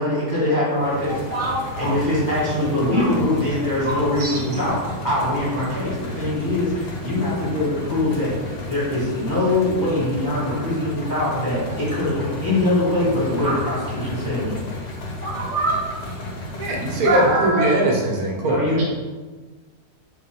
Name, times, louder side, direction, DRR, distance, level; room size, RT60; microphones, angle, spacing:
voice 1, 0.0-1.2 1.8-4.8 5.0-14.6 18.4-18.8, left 1 dB, 15° left, -8 dB, 1.1 m, -23 dB
voice 2, 0.6-1.9 2.9-3.1 3.8-4.3 13.4-13.5 15.2-15.8 17.0-17.8, right 2 dB, 20° right, -7 dB, 0.3 m, -25 dB
sound 1, 0.7-17.6, left 1 dB, 55° left, 0.4 m, -33 dB
voice 3, 16.6-18.8, right 1 dB, 75° right, 0 dB, 1.1 m, -21 dB
5.0 x 2.1 x 3.0 m, 1.3 s
omnidirectional pair, 1.6 m